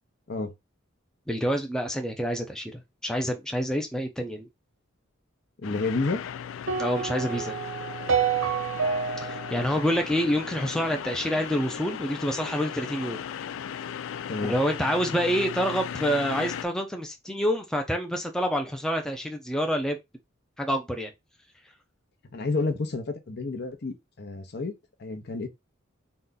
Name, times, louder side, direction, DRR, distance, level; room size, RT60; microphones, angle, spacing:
voice 1, 1.3-4.5 6.8-7.5 9.2-13.2 14.4-20.0 20.6-21.1, equal, 5° left, 0.4 m, -27 dB
sound 1, 5.6-16.7, left 8 dB, 70° left, 0.3 m, -37 dB
voice 2, 5.6-6.2 14.3-14.6 22.2-25.5, left 3 dB, 55° left, 0.8 m, -30 dB
sound 2, 6.7-11.0, right 6 dB, 90° right, 0.8 m, -29 dB
4.0 x 2.3 x 3.8 m
head